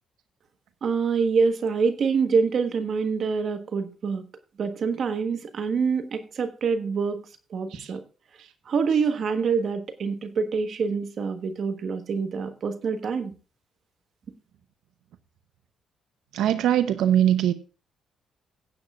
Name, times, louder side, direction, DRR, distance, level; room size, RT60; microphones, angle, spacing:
voice 1, 0.8-4.2 4.6-7.2 7.5-8.0 8.6-13.3, right 5 dB, 55° right, 1.3 m, -26 dB
voice 2, 16.3-17.6, right 11 dB, 85° right, 0.8 m, -22 dB
16.5 x 8.9 x 2.4 m
cardioid pair, 90°, 0 cm